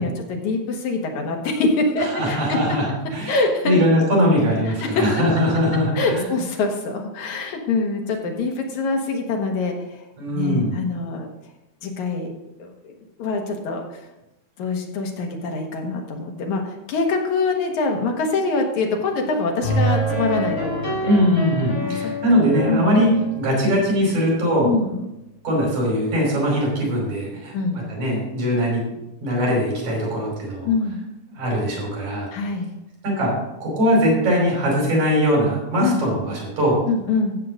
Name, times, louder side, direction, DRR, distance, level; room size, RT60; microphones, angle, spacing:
voice 1, 0.0-2.6 3.3-3.8 4.7-5.1 6.0-10.1 10.3-11.3 11.8-12.3 12.6-14.0 14.6-21.2 21.8-22.1 22.7-23.0 24.6-25.1 27.5-27.8 30.7-31.0 32.3-32.7 35.8-36.0 36.9-37.4, left 3 dB, 85° left, 2 dB, 2.9 m, -24 dB
voice 2, 2.0-3.4 3.6-6.2 10.2-10.8 21.0-23.1 23.4-24.7 25.4-30.7 31.3-32.3 33.0-33.3 33.6-36.8, equal, 75° right, -3 dB, 6.3 m, -21 dB
sound 1, 19.6-24.5, right 1 dB, 20° left, 3.7 m, -27 dB
15.0 x 7.6 x 3.9 m, 0.92 s
omnidirectional pair, 3.3 m